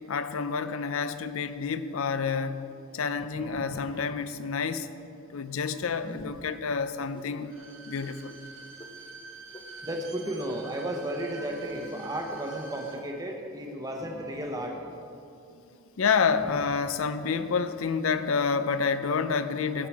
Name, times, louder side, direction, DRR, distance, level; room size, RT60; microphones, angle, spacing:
voice 1, 0.1-4.9 5.3-7.5 7.9-8.4 15.5-15.6 16.0-19.9, left 5 dB, 75° left, 12 dB, 0.5 m, -29 dB
voice 2, 3.1-4.0 6.1-6.3 9.8-14.9, right 1 dB, 15° right, 2 dB, 1.0 m, -34 dB
sound 1, 6.0-6.4 7.1-7.3 8.0-8.1 8.8-8.9 9.5-9.6 10.2-10.3 10.9-11.0 11.6-11.7 12.3-12.4 13.0-13.1, left 1 dB, 20° left, 0.6 m, -45 dB
Bowed string instrument, 7.4-13.0 13.3-13.4, right 3 dB, 65° right, 1.0 m, -47 dB
16.5 x 5.7 x 4.6 m, 2.6 s
head